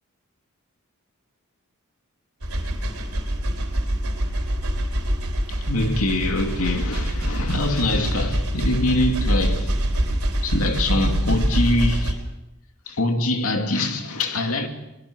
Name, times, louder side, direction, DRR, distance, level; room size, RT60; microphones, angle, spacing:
sound 1, 2.4-12.1, equal, 85° right, 4.0 m, -24 dB
voice 1, 5.5-9.7 10.4-12.2 12.9-14.7, left 1 dB, 70° left, 2.7 m, -24 dB
23.5 x 20.0 x 6.5 m
head